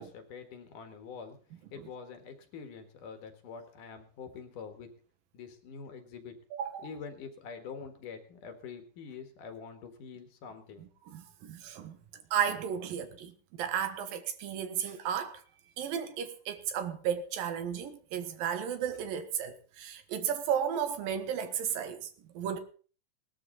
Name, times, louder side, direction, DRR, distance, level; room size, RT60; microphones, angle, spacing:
voice 1, 0.0-1.4 1.7-4.9 5.3-6.4 6.8-10.9, left 6 dB, 70° left, 3.3 m, -45 dB
voice 2, 6.5-6.9 11.1-12.0 12.3-15.4 15.8-22.6, right 8 dB, 85° right, 3.2 m, -34 dB
19.5 x 12.5 x 4.1 m
omnidirectional pair, 3.9 m